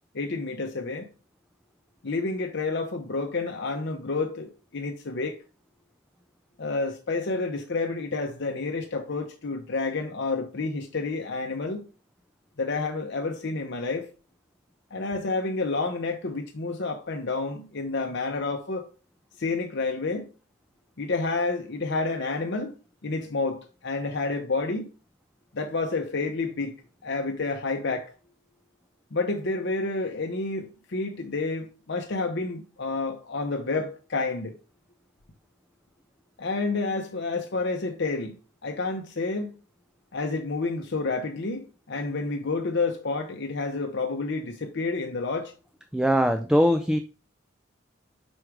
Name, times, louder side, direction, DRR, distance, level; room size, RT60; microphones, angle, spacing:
voice 1, 0.1-1.1 2.0-5.4 6.6-11.9 12.6-14.1 14.9-18.8 19.4-20.3 21.0-22.7 23.0-24.9 25.5-26.8 27.0-28.1 29.1-34.5 36.4-38.4 38.6-39.5 40.1-45.5, left 3 dB, 60° left, 0.8 m, -29 dB
voice 2, 45.9-47.0, equal, 5° right, 0.4 m, -21 dB
6.2 x 4.9 x 4.6 m
head